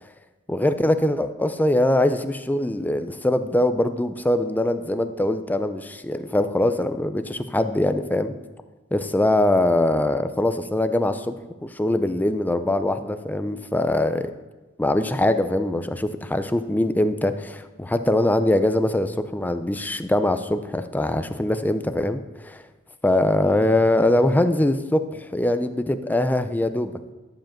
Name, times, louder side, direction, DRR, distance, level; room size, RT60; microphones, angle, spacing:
voice 1, 0.5-8.3 8.9-11.4 11.6-14.3 14.8-22.6 23.0-26.9, left 1 dB, 10° left, 10 dB, 0.5 m, -22 dB
11.5 x 5.2 x 7.2 m, 1.2 s
head